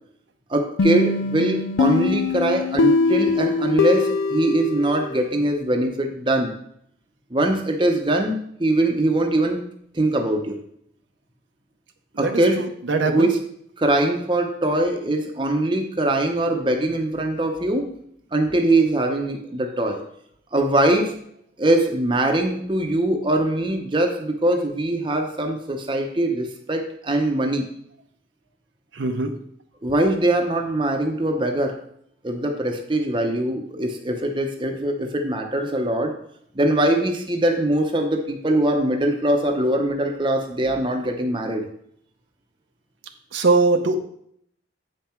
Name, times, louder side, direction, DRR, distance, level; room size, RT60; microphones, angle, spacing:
voice 1, 0.5-6.5 7.3-9.6 9.9-10.6 12.2-12.7 13.0-13.4 13.8-17.9 18.3-20.0 20.5-21.1 21.6-27.7 29.8-31.8 32.2-36.2 36.5-41.7, right 1 dB, 25° right, 3 dB, 0.8 m, -22 dB
sound 1, 0.8-5.5, left 4 dB, 80° left, 0.4 m, -22 dB
voice 2, 12.2-13.3 29.0-29.3 43.3-44.0, right 3 dB, 70° right, 6 dB, 0.7 m, -21 dB
8.3 x 5.6 x 4.4 m, 0.69 s
head